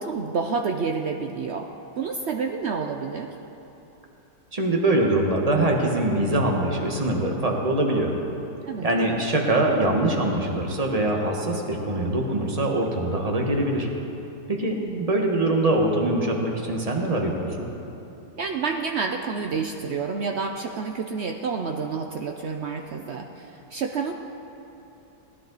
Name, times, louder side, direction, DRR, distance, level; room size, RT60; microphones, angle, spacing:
voice 1, 0.0-1.7 2.0-3.3 8.7-9.2 14.8-15.2 18.4-24.1, right 5 dB, 75° right, 4 dB, 0.6 m, -29 dB
voice 2, 4.5-8.1 8.8-13.9 14.5-17.7, right 1 dB, 25° right, 0 dB, 1.2 m, -23 dB
18.0 x 11.0 x 4.0 m, 2.9 s
omnidirectional pair, 1.8 m